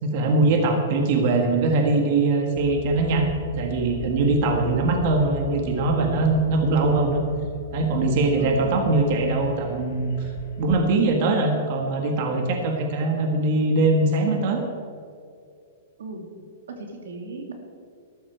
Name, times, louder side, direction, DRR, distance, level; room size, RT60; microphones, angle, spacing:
voice 1, 0.0-7.2 7.7-10.3 10.6-14.6, right 2 dB, 45° right, 3 dB, 1.8 m, -22 dB
sound 1, 2.6-11.1, left 8 dB, 55° left, 1.1 m, -39 dB
voice 2, 8.4-9.0 16.0-16.2 16.8-17.5, right 3 dB, 90° right, 3 dB, 2.5 m, -36 dB
13.5 x 13.0 x 4.6 m, 2.3 s
hypercardioid pair, 155°, 0 cm